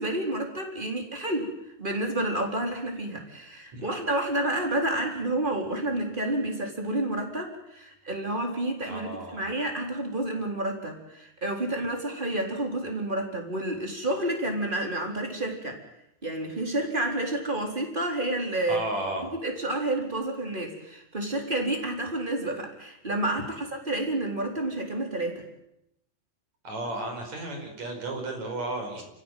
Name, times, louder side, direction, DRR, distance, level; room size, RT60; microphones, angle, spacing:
voice 1, 0.0-1.5 1.8-15.8 16.2-18.8 19.4-25.4, right 1 dB, 15° right, 2 dB, 4.1 m, -30 dB
voice 2, 8.9-9.4 18.7-19.3 26.6-29.1, right 1 dB, 65° right, 3 dB, 6.2 m, -33 dB
29.0 x 15.5 x 9.2 m, 0.82 s
omnidirectional pair, 3.4 m